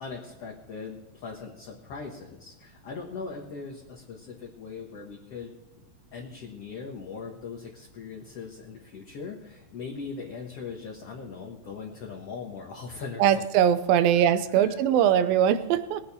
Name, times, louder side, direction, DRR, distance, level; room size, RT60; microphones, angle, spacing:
voice 1, 0.0-5.5 6.1-13.5 14.1-14.3 14.5-14.8, left 5 dB, 55° left, 0 dB, 2.0 m, -40 dB
voice 2, 13.2-16.0, right 9 dB, 85° right, 13 dB, 2.5 m, -21 dB
20.0 x 8.7 x 4.3 m, 1.0 s
omnidirectional pair, 4.1 m